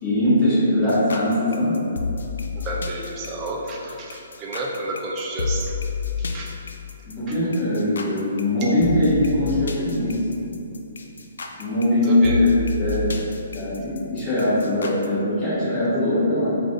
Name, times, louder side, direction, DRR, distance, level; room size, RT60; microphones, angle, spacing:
voice 1, 0.0-1.8 7.1-10.3 11.6-13.1 13.5-16.6, left 1 dB, 20° left, -12 dB, 1.4 m, -21 dB
sound 1, 0.9-15.1, left 5 dB, 85° left, 0.3 m, -30 dB
voice 2, 2.6-5.7 6.2-6.6 8.6-8.7 12.0-12.4, right 2 dB, 20° right, -2 dB, 0.4 m, -31 dB
3.3 x 2.5 x 3.7 m, 2.7 s
hypercardioid pair, 170°, 0 cm